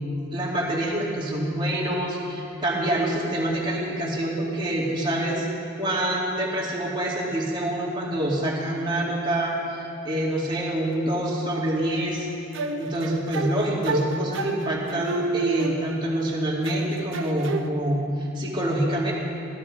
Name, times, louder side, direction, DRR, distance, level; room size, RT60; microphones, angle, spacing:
voice 1, 0.3-5.5 5.8-12.3 12.8-19.1, right 1 dB, 20° right, -4 dB, 2.4 m, -26 dB
sound 1, 12.5-16.2 16.6-17.7, right 3 dB, 60° right, 0.8 m, -30 dB
15.5 x 15.0 x 5.1 m, 3.0 s
head